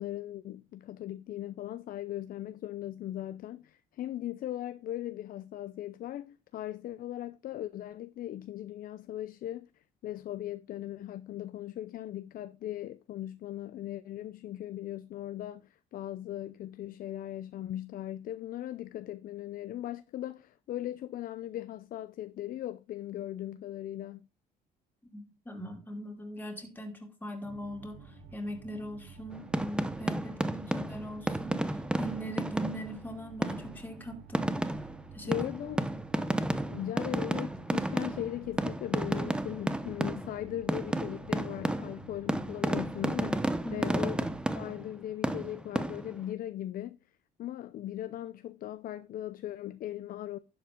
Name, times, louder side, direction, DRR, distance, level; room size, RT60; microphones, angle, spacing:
voice 1, 0.0-24.3 35.2-35.8 36.7-44.2 44.5-47.0 47.4-50.4, left 13 dB, 60° left, 0.6 m, -39 dB
voice 2, 25.1-31.6 32.0-34.5 35.1-35.4 43.6-43.9, right 1 dB, 10° left, 3.0 m, -40 dB
sound 1, 27.4-44.4, right 5 dB, 65° right, 3.6 m, -51 dB
sound 2, 29.3-33.0 33.4-33.8 34.3-40.4 40.7-45.0 45.2-46.2, right 1 dB, 5° right, 0.8 m, -32 dB
11.5 x 7.7 x 3.8 m
cardioid pair, 110°, 17 cm